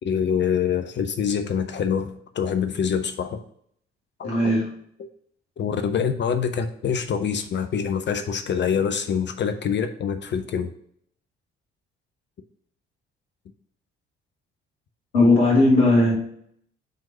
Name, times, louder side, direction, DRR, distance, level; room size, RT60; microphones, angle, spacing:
voice 1, 0.0-3.4 4.2-4.6 5.6-10.7, left 7 dB, 35° left, 8 dB, 0.6 m, -25 dB
voice 2, 4.2-4.7 15.1-16.1, left 2 dB, 75° left, -4 dB, 2.0 m, -17 dB
5.3 x 3.7 x 5.5 m, 0.67 s
figure-of-eight pair, 45°, 31 cm